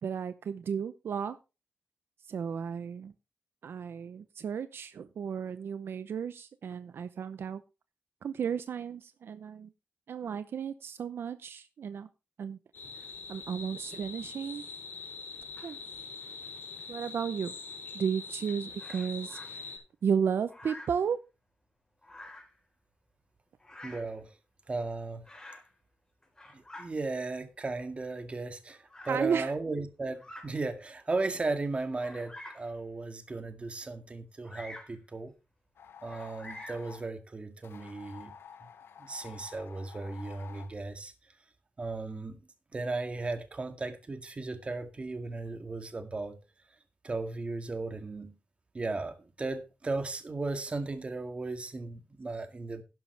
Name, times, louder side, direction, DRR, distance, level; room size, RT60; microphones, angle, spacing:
voice 1, 0.0-1.4 2.3-3.1 3.6-7.6 8.2-9.7 10.1-12.1 12.4-12.6 13.3-14.6 15.6-15.8 16.9-17.5 17.9-19.7 20.0-21.2 29.1-29.6, right 7 dB, 75° right, 0.7 m, -33 dB
sound 1, 12.7-19.8, left 5 dB, 60° left, 4.9 m, -43 dB
Bird vocalization bird call bird song, 18.8-19.5 20.5-21.0 22.0-22.6 23.6-24.1 25.2-25.7 26.2-26.9 27.7-27.8 28.9-29.2 30.1-30.5 31.1-31.2 32.0-32.7 34.4-35.0 36.0-36.9, left 1 dB, 15° left, 4.1 m, -47 dB
voice 2, 23.8-24.3 24.7-25.2 26.5-35.3 36.0-38.3 39.0-41.1 41.8-42.4 42.7-46.4 47.0-48.3 48.7-52.8, right 3 dB, 30° right, 1.9 m, -36 dB
sound 2, 35.8-37.1 37.6-40.7, left 7 dB, 85° left, 1.0 m, -50 dB
12.0 x 10.5 x 3.4 m
wide cardioid pair, 120°, 4 cm